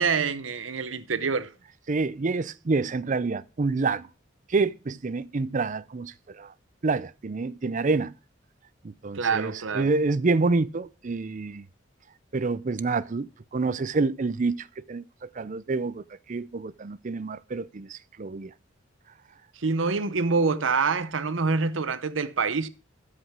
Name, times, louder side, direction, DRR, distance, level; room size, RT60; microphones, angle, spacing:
voice 1, 0.0-1.5 9.1-9.9 19.6-22.7, right 4 dB, 85° right, 0.8 m, -26 dB
voice 2, 1.9-4.1 4.5-6.5 6.8-8.1 9.0-11.6 12.3-13.3 13.5-15.0 15.4-16.0 16.3-18.5, right 3 dB, 40° right, 0.5 m, -27 dB
13.5 x 5.1 x 6.0 m
head